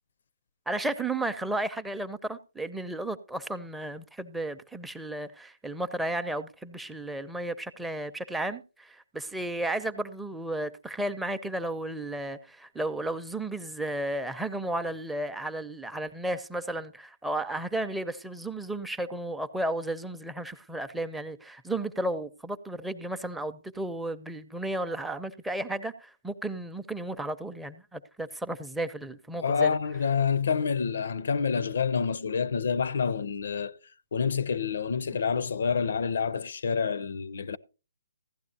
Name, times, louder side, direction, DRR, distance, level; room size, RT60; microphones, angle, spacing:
voice 1, 0.7-29.8, right 1 dB, 5° right, 0.5 m, -33 dB
voice 2, 29.4-33.8 34.1-37.6, left 6 dB, 60° left, 0.5 m, -27 dB
15.5 x 11.5 x 2.8 m
hypercardioid pair, 145°, 0 cm